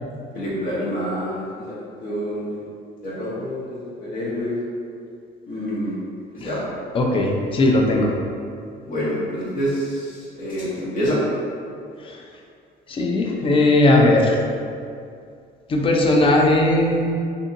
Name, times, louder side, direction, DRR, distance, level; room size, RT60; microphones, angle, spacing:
voice 1, 0.3-1.7 2.0-2.5 3.0-4.6 5.5-5.9 6.4-6.6 8.9-11.2, equal, 55° left, -7 dB, 0.8 m, -27 dB
voice 2, 6.9-8.1 12.0-12.2 12.9-14.4 15.7-17.2, left 1 dB, 30° left, 0 dB, 0.4 m, -18 dB
2.7 x 2.6 x 2.5 m, 2.3 s
cardioid pair, 110°, 17 cm